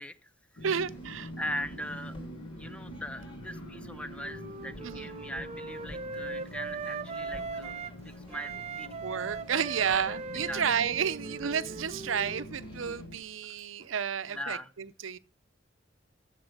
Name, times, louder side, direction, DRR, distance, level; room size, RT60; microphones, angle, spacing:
voice 1, 0.0-0.6 1.4-2.1 2.6-7.7 8.0-9.0 10.3-10.7 12.9-13.0 14.3-14.7, equal, 5° left, 0.7 m, -40 dB
sound 1, 0.6-13.2, equal, 85° left, 1.5 m, -45 dB
voice 2, 0.6-1.3 4.8-5.1 9.0-15.2, right 7 dB, 85° right, 0.6 m, -31 dB
sound 2, 0.8-13.9, left 1 dB, 30° left, 3.3 m, -53 dB
Wind instrument woodwind instrument, 3.6-8.0 8.3-12.8, right 4 dB, 35° right, 0.5 m, -40 dB
14.5 x 5.4 x 6.5 m
head